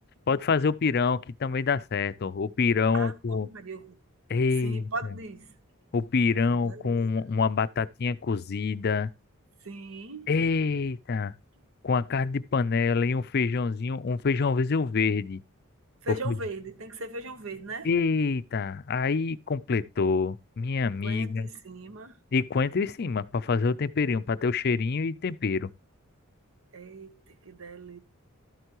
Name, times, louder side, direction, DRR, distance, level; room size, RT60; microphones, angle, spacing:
voice 1, 0.3-3.5 4.3-4.9 5.9-9.1 10.3-11.3 11.8-15.4 16.3-16.4 17.8-21.5 22.3-25.7, left 4 dB, 50° left, 0.4 m, -26 dB
voice 2, 2.9-4.0 4.6-5.6 6.4-7.0 9.6-10.3 16.0-18.0 21.0-22.2 26.7-28.0, right 2 dB, 70° right, 1.1 m, -39 dB
12.5 x 8.0 x 3.0 m
head